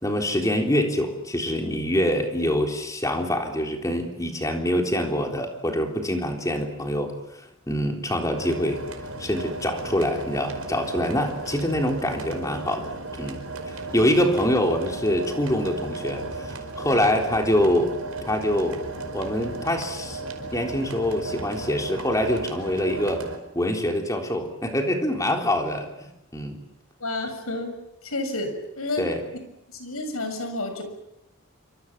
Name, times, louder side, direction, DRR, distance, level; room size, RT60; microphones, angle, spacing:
voice 1, 0.0-8.8 9.2-13.4 13.9-18.0 18.3-18.8 19.1-23.3 23.5-25.9 26.3-26.6 29.0-29.2, left 1 dB, 15° left, 3 dB, 3.7 m, -25 dB
sound 1, 8.4-23.4, right 2 dB, 80° right, 4.9 m, -35 dB
voice 2, 27.0-27.7 28.0-29.0 29.7-30.8, left 2 dB, 80° left, 7 dB, 6.9 m, -30 dB
27.5 x 26.0 x 7.4 m, 0.85 s
head